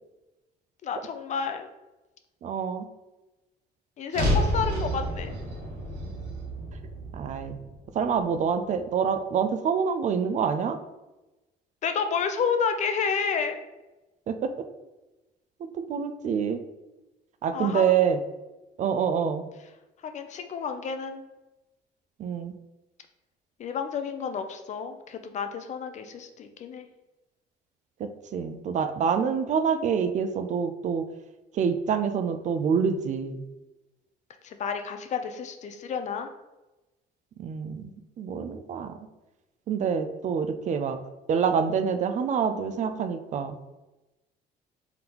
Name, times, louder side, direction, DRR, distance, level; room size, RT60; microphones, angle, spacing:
voice 1, 0.8-1.7 4.0-5.3 11.8-13.6 17.5-17.9 20.0-21.2 23.6-26.9 34.4-36.3, left 6 dB, 45° left, 7 dB, 0.4 m, -30 dB
voice 2, 2.4-2.9 7.1-7.6 7.9-10.8 14.3-14.5 15.7-16.6 17.4-18.2 18.8-19.4 22.2-22.5 28.3-31.1 31.5-33.4 37.4-37.9 38.2-38.9 39.7-41.0 41.3-43.6, right 7 dB, 45° right, 8 dB, 0.4 m, -26 dB
sound 1, 4.1-8.4, equal, 80° right, 1.1 m, -30 dB
3.8 x 3.5 x 2.9 m, 1.1 s
cardioid pair, 110°, 17 cm